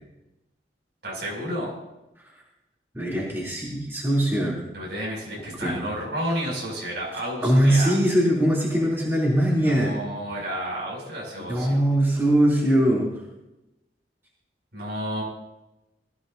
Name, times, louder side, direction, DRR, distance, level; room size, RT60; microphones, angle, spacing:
voice 1, 1.0-1.7 4.7-8.0 9.5-11.8 14.7-15.2, equal, 70° right, -3 dB, 6.5 m, -31 dB
voice 2, 2.9-4.6 5.5-5.9 7.4-9.9 11.5-13.1, right 1 dB, 15° right, -6 dB, 3.2 m, -21 dB
21.0 x 14.5 x 2.7 m, 0.96 s
head